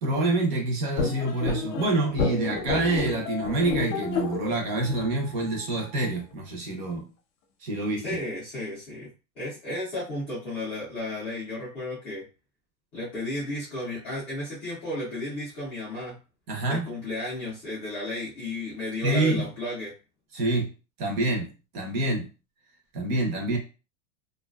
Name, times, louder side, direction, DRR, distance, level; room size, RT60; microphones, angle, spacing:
voice 1, 0.0-7.1 7.6-8.2 16.5-16.9 19.0-19.4 20.3-20.7 21.0-22.3 22.9-23.6, right 2 dB, 35° right, 2 dB, 0.6 m, -27 dB
sound 1, 1.0-6.1, left 4 dB, 65° left, 0.6 m, -31 dB
voice 2, 8.0-9.1 9.4-12.2 12.9-16.1 16.7-19.9, left 1 dB, 15° left, -10 dB, 0.3 m, -33 dB
2.5 x 2.3 x 2.2 m, 0.32 s
supercardioid pair, 175°, 40 cm